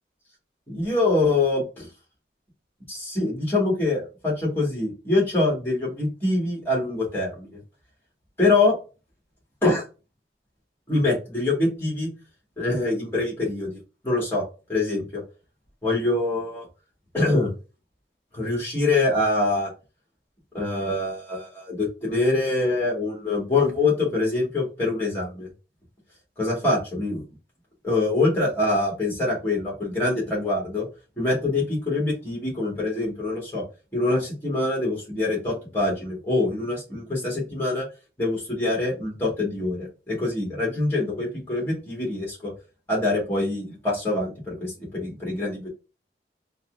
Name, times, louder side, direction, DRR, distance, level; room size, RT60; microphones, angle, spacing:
voice 1, 0.7-1.9 2.9-7.5 8.4-8.7 9.6-9.8 10.9-12.1 12.6-13.8 14.0-14.4 14.7-15.2 15.8-16.7 17.1-17.5 18.3-19.7 20.5-25.5 26.4-27.2 27.8-30.9 31.2-33.6 33.9-37.9 38.2-42.5 42.9-45.7, left 2 dB, 10° left, -3 dB, 1.8 m, -24 dB
4.0 x 2.4 x 2.5 m, 0.31 s
head